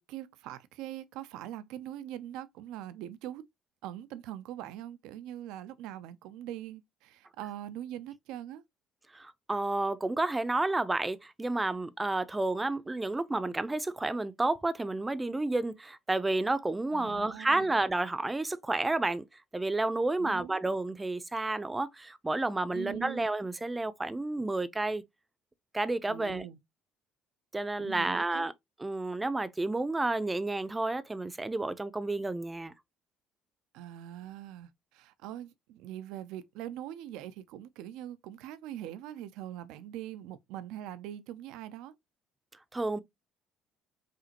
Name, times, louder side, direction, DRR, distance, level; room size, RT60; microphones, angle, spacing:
voice 1, 0.0-3.4 3.8-8.6 16.9-17.7 20.2-20.6 22.7-23.2 26.1-26.6 27.8-28.4 33.7-41.9, right 12 dB, 70° right, 0.4 m, -42 dB
voice 2, 9.1-19.2 19.5-25.0 25.7-26.5 27.5-28.5 28.8-32.7 42.7-43.0, right 2 dB, 15° right, 0.6 m, -31 dB
5.0 x 2.8 x 2.9 m
hypercardioid pair, 60°, 0 cm